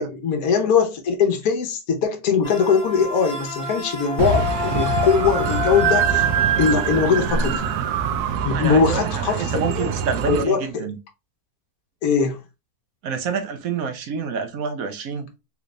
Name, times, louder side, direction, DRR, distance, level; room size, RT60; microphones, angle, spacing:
voice 1, 0.0-6.3 6.6-7.7 8.4-9.9 10.3-10.9 12.0-12.4, left 5 dB, 70° left, 1.3 m, -21 dB
sound 1, 2.4-8.3, left 5 dB, 30° left, 1.7 m, -30 dB
sound 2, 4.2-10.4, right 8 dB, 90° right, 1.1 m, -24 dB
voice 2, 8.5-11.0 13.0-15.3, right 5 dB, 70° right, 1.1 m, -28 dB
3.7 x 3.2 x 2.5 m
omnidirectional pair, 1.6 m